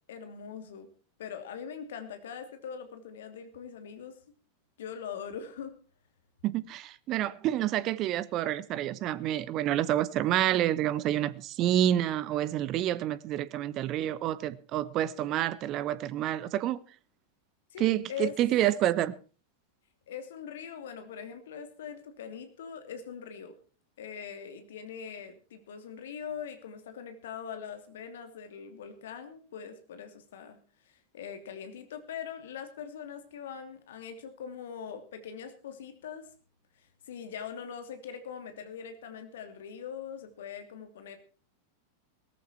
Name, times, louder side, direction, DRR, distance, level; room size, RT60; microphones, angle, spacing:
voice 1, 0.1-0.9 1.2-4.2 4.8-5.7 17.7-18.3 20.1-23.5 24.0-30.6 30.8-36.3 36.8-41.2, left 7 dB, 60° left, 2.9 m, -42 dB
voice 2, 6.4-16.8 17.8-19.1, right 12 dB, 35° right, 1.0 m, -28 dB
18.0 x 14.0 x 4.4 m
figure-of-eight pair, 90°, 0 cm